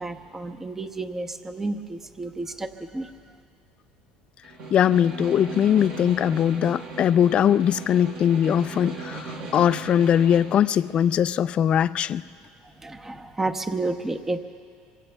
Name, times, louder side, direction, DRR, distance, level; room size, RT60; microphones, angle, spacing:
voice 1, 0.0-3.1 12.8-14.4, right 2 dB, 15° right, 6 dB, 0.8 m, -31 dB
Snare drum, 4.4-10.6, right 3 dB, 60° right, 3.2 m, -38 dB
voice 2, 4.7-9.3 9.5-12.2, left 9 dB, 40° left, 15 dB, 0.4 m, -21 dB
26.0 x 24.0 x 2.3 m, 2.1 s
supercardioid pair, 120°, 3 cm